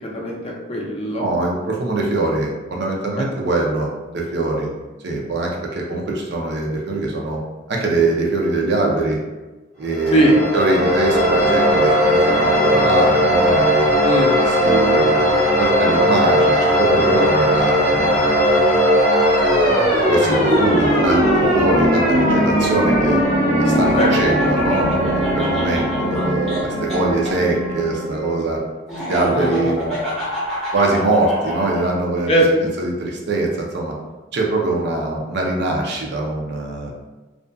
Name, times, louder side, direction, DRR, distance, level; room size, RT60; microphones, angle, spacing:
voice 1, 0.0-1.3 3.2-3.3 10.1-10.4 14.0-14.4 23.9-24.1 29.3-29.6 32.3-32.7, right 1 dB, 30° left, -2 dB, 0.4 m, -19 dB
voice 2, 1.2-4.7 5.0-7.4 7.7-9.2 9.8-13.9 14.4-18.4 20.1-21.3 21.5-23.2 23.6-28.6 29.1-30.0 30.7-32.4 32.8-33.9 34.3-36.9, right 2 dB, 60° right, -1 dB, 0.5 m, -22 dB
sound 1, 9.9-28.5, equal, 40° right, 0.9 m, -18 dB
Laughter, 23.7-27.3 28.9-31.8, equal, ahead, 1.0 m, -27 dB
2.4 x 2.4 x 2.2 m, 1.2 s
head